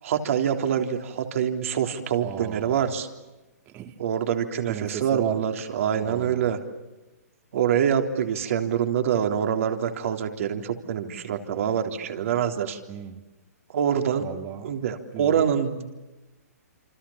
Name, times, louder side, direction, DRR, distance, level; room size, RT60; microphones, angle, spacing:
voice 1, 0.0-3.1 4.0-6.6 7.5-12.8 13.7-14.2 14.6-15.9, right 8 dB, 55° right, 6 dB, 3.6 m, -25 dB
voice 2, 2.2-2.9 3.7-4.0 4.7-5.4 6.0-6.6 12.9-13.2 14.2-14.7 15.1-15.4, right 11 dB, 25° right, 8 dB, 2.4 m, -36 dB
28.0 x 26.5 x 7.3 m, 1.1 s
hypercardioid pair, 145°, 9 cm